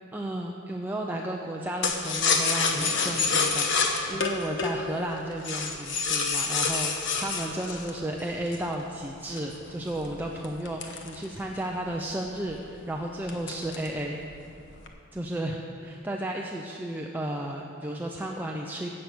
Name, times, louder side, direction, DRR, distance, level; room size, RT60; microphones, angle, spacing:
voice 1, 0.1-14.2 15.1-18.9, right 1 dB, 10° right, -1 dB, 0.6 m, -33 dB
sound 1, 1.8-8.7 9.3-11.7 12.1-12.2 12.5-12.8 13.3-14.0 14.3-14.9, left 4 dB, 60° left, 1.2 m, -28 dB
15.0 x 8.4 x 6.1 m, 2.5 s
head